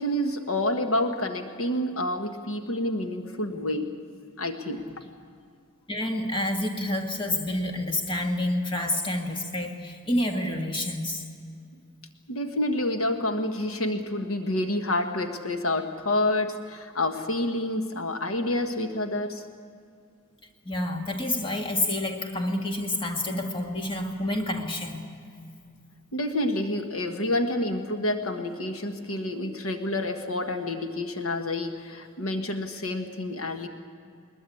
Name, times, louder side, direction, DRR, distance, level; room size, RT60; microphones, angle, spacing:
voice 1, 0.0-4.0 4.4-4.9 12.3-19.4 26.1-33.7, left 1 dB, 75° left, 5 dB, 1.5 m, -28 dB
voice 2, 5.9-11.2 20.7-25.0, left 1 dB, 25° left, 2 dB, 1.9 m, -28 dB
21.0 x 21.0 x 8.4 m, 2.3 s
head